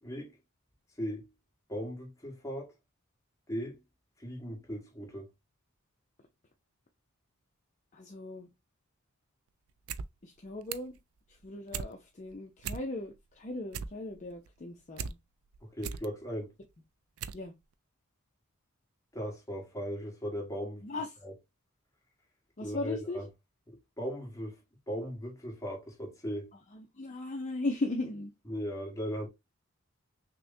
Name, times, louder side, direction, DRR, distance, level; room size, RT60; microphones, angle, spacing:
voice 1, 0.0-0.3 1.0-1.3 1.7-2.7 3.5-3.8 4.2-5.3 15.7-16.5 19.1-20.9 21.2-21.3 22.6-23.2 23.7-24.5 24.9-26.5 28.5-29.3, equal, 15° left, 1.4 m, -38 dB
voice 2, 7.9-8.5 10.2-10.9 11.3-15.2 17.3-17.5 20.8-21.3 22.6-23.2 26.7-28.3, left 2 dB, 35° left, 0.5 m, -37 dB
sound 1, 9.7-10.1 10.4-11.0 11.4-11.9 12.3-12.4 12.6-13.2 13.5-15.1 15.5-16.1 16.6-16.7 17.2-17.4 17.7-17.8, right 7 dB, 85° right, 0.4 m, -38 dB
6.0 x 2.1 x 2.6 m
head